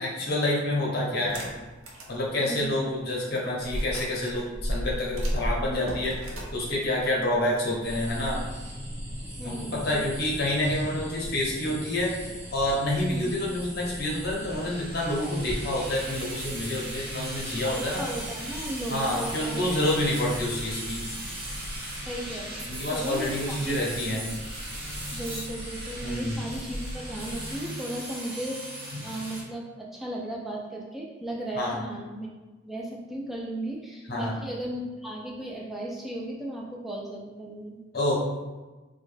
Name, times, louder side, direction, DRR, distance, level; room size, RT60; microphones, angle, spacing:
voice 1, 0.0-1.5 2.1-8.4 9.4-12.1 12.5-18.0 18.9-21.0 22.7-24.3 26.0-26.4 31.6-31.8 34.1-34.4 37.9-38.2, left 1 dB, 50° left, -3 dB, 0.7 m, -28 dB
sound 1, 1.2-2.2 2.6-2.7 3.6-7.9, equal, 90° right, 0.6 m, -33 dB
voice 2, 2.4-2.8 9.4-10.1 13.1-13.3 17.6-19.7 22.0-24.1 25.1-28.7 29.0-32.3 32.6-37.8, right 1 dB, ahead, -3 dB, 0.4 m, -36 dB
sound 2, 7.8-27.6, equal, 30° right, 0.9 m, -39 dB
sound 3, 14.5-29.4, right 1 dB, 45° right, 1.1 m, -39 dB
3.5 x 2.2 x 3.2 m, 1.2 s
head